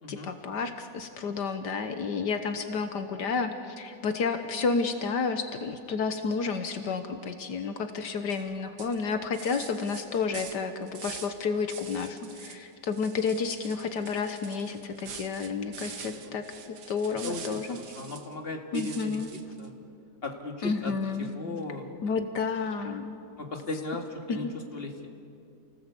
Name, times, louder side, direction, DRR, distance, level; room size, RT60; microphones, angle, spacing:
voice 1, 0.1-17.8 18.7-19.3 20.6-21.3 22.0-23.2 24.3-24.5, left 5 dB, 75° left, 8 dB, 1.7 m, -31 dB
sound 1, 8.3-8.5 8.8-11.4 11.7-12.6 12.9-18.3 18.7-19.7, right 7 dB, 70° right, 1.9 m, -45 dB
voice 2, 16.0-16.4 17.2-19.7 20.2-20.9 21.2-22.1 23.4-24.5 24.7-25.1, left 2 dB, 35° left, 3 dB, 2.5 m, -37 dB
29.0 x 18.5 x 8.3 m, 2.6 s
omnidirectional pair, 1.9 m